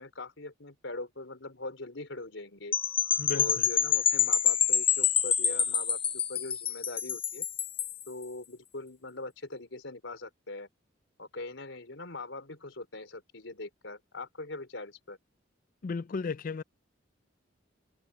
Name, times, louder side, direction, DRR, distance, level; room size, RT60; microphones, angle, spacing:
voice 1, 0.0-2.7 3.3-7.5 8.1-10.7 11.2-15.2, left 2 dB, 85° left, 3.8 m, -42 dB
sound 1, 2.7-8.0, left 8 dB, 30° left, 0.8 m, -27 dB
voice 2, 3.2-3.7 15.8-16.6, left 4 dB, 50° left, 0.4 m, -34 dB
open air
head